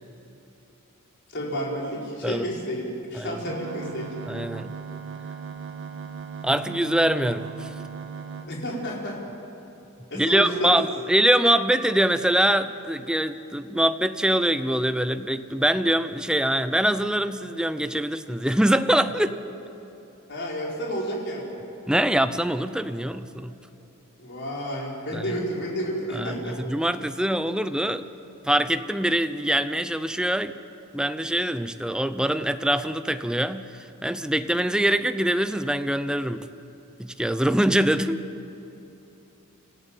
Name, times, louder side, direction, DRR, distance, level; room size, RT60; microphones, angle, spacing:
voice 1, 1.3-2.8 3.1-4.1 8.5-9.3 10.1-10.8 20.3-21.6 24.2-26.6, equal, 55° left, -3 dB, 4.9 m, -31 dB
sound 1, 3.5-8.5, right 5 dB, 60° right, 1.9 m, -37 dB
voice 2, 4.3-4.7 6.4-7.7 10.1-19.4 21.9-23.5 25.1-25.2 26.1-28.0 28.4-30.6 30.9-33.7 34.0-36.5 37.0-38.2, right 1 dB, 5° right, 11 dB, 0.6 m, -24 dB
26.5 x 14.5 x 9.2 m, 3.0 s
head